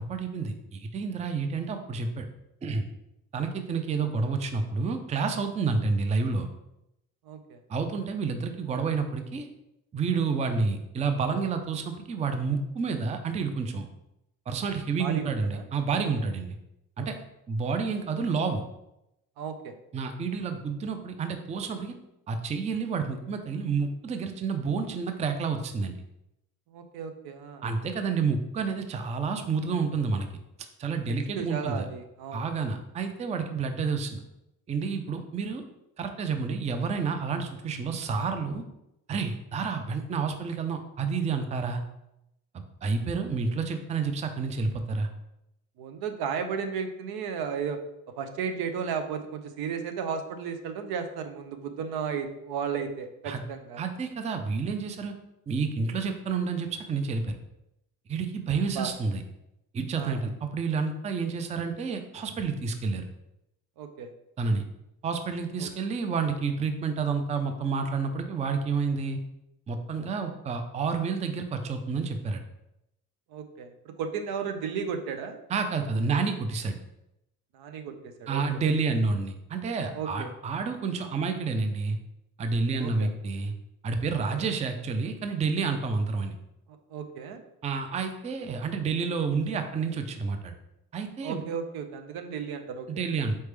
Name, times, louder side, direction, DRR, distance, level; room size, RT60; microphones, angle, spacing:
voice 1, 0.0-2.3 2.6-2.8 3.3-6.5 7.7-9.5 9.9-13.9 14.5-16.6 17.0-17.2 17.5-18.6 19.9-21.9 22.3-25.9 27.6-30.3 30.8-31.9 32.3-34.2 34.7-35.6 36.0-38.6 39.1-41.8 42.8-45.1 53.3-53.4 53.8-55.1 55.5-57.4 58.1-59.2 59.7-63.0 64.4-64.6 65.0-69.2 69.7-72.4 75.5-76.8 78.3-82.0 82.4-83.5 83.8-86.3 87.6-90.5 90.9-91.4 92.9-93.4, right 4 dB, 20° right, 7 dB, 0.3 m, -29 dB
voice 2, 7.3-7.6 15.0-15.6 17.0-17.1 19.4-19.7 26.7-27.6 31.1-32.4 45.8-47.8 48.2-53.8 58.7-58.9 60.0-60.2 63.8-64.1 65.6-65.7 73.3-75.4 77.5-78.4 79.9-80.3 82.8-83.1 84.1-84.2 86.9-87.4 91.2-92.9, right 6 dB, 85° right, 7 dB, 0.6 m, -34 dB
4.2 x 3.3 x 3.3 m, 0.85 s
cardioid pair, 115°, 37 cm